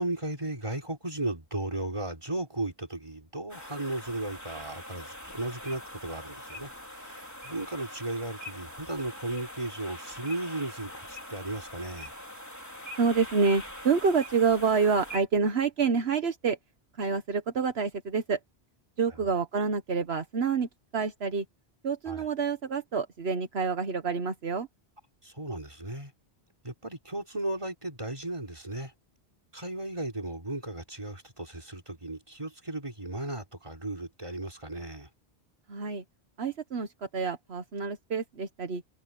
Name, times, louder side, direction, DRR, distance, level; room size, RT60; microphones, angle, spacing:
voice 1, 0.0-12.1 22.1-22.3 25.2-26.1 26.6-28.9 29.5-35.1, right 2 dB, 30° right, 3.6 m, -35 dB
sound 1, 3.5-15.2, left 1 dB, 15° left, 3.8 m, -43 dB
voice 2, 13.0-16.6 17.0-18.4 19.0-21.4 21.8-24.7 35.7-36.0 36.4-38.8, right 5 dB, 75° right, 1.4 m, -28 dB
omnidirectional pair, 1.1 m